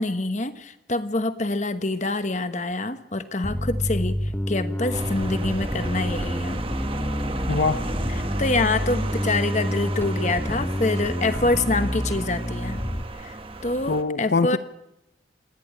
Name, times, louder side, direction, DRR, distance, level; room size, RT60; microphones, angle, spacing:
voice 1, 0.0-6.6 8.4-12.8 13.2-13.4 13.6-14.6, left 2 dB, 40° left, 10 dB, 1.2 m, -26 dB
Bass guitar, 3.4-13.0, equal, 10° left, 0.8 m, -28 dB
sound 1, 4.9-14.0, right 2 dB, 30° right, 1.3 m, -34 dB
voice 2, 7.5-7.9 13.9-14.6, left 3 dB, 65° left, 11 dB, 0.8 m, -23 dB
28.0 x 11.0 x 8.6 m, 0.85 s
head